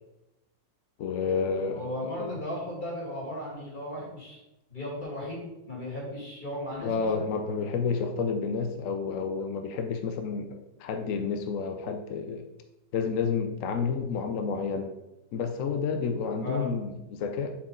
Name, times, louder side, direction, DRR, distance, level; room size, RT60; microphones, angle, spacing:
voice 1, 1.0-2.3 6.8-12.4 12.9-14.9 15.3-17.6, left 5 dB, 70° left, 6 dB, 0.7 m, -30 dB
voice 2, 1.7-4.4 4.7-7.3 16.4-16.7, equal, 25° left, -4 dB, 2.2 m, -36 dB
7.0 x 4.7 x 3.8 m, 0.94 s
omnidirectional pair, 2.0 m